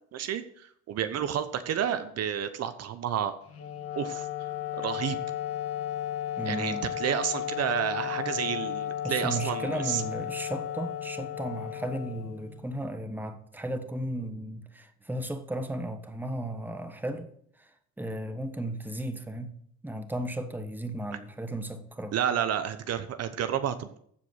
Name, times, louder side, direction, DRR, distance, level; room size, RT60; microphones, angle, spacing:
voice 1, 0.1-3.4 3.9-4.3 4.7-5.2 6.4-10.0 22.1-24.0, right 9 dB, 55° right, 0.9 m, -30 dB
Wind instrument woodwind instrument, 3.5-12.8, left 11 dB, 50° left, 1.6 m, -34 dB
voice 2, 6.4-6.9 9.0-17.3 17.6-17.7 18.0-19.5 19.8-22.1, right 1 dB, 5° right, 1.2 m, -35 dB
14.5 x 5.0 x 6.4 m
cardioid pair, 105°, 30 cm